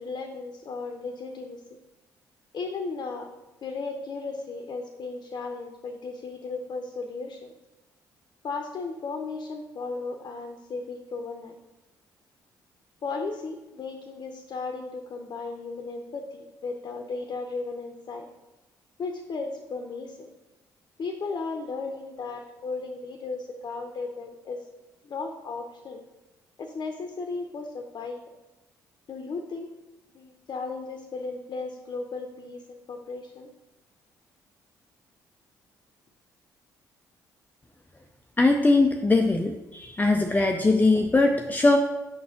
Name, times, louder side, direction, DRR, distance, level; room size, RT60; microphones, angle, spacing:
voice 1, 0.0-1.8 2.5-3.3 3.6-7.5 8.4-11.5 13.0-18.3 19.0-20.3 21.0-24.6 25.0-26.0 26.6-28.2 29.1-29.7 30.1-33.5, left 4 dB, 50° left, 4 dB, 0.8 m, -35 dB
voice 2, 38.4-41.8, left 2 dB, 20° left, 4 dB, 0.6 m, -21 dB
5.4 x 4.2 x 5.8 m, 1.1 s
hypercardioid pair, 50°, 9 cm